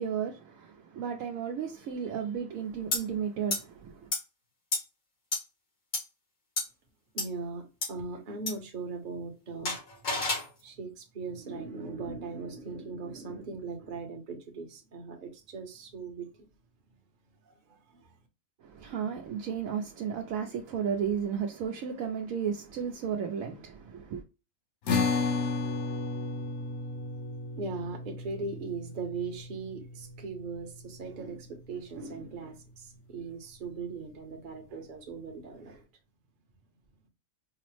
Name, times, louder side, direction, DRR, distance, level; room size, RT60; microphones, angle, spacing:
voice 1, 0.0-4.1 18.6-24.2, right 7 dB, 75° right, 1.0 m, -34 dB
sound 1, 2.9-3.0 3.5-3.6 4.1-4.2 4.7-4.8 5.3-5.4 5.9-6.0 6.6-6.7 7.2-7.3 7.8-7.9 8.5-8.6 9.7-10.5, left 2 dB, 85° left, 2.2 m, -29 dB
voice 2, 7.1-9.7 10.6-16.3 17.4-18.2 27.6-35.9, right 4 dB, 45° right, 0.9 m, -39 dB
sound 2, 24.9-31.5, left 3 dB, 65° left, 1.0 m, -33 dB
4.8 x 2.0 x 3.0 m
omnidirectional pair, 1.4 m